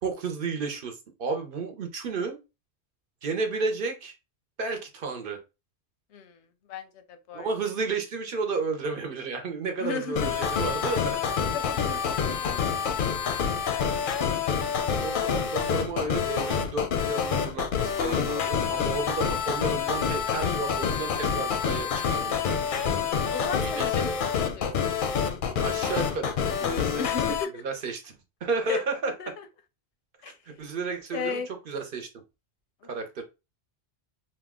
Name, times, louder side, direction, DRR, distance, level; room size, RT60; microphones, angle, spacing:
voice 1, 0.0-2.4 3.2-4.1 4.6-5.4 7.3-11.2 15.0-22.7 23.6-24.2 25.6-27.0 27.5-28.1 28.4-29.3 30.5-32.1 32.9-33.2, right 4 dB, 60° right, 0.8 m, -32 dB
voice 2, 6.1-7.5 9.8-10.4 11.5-12.8 13.2-13.4 13.7-13.9 23.3-24.8 27.0-27.6 28.7-28.8 29.2-29.5 30.2-30.4 31.1-31.5 32.8-32.9, left 5 dB, 90° left, 0.9 m, -35 dB
sound 1, 10.2-27.4, left 7 dB, 60° left, 0.6 m, -27 dB
2.7 x 2.1 x 3.4 m
omnidirectional pair, 1.1 m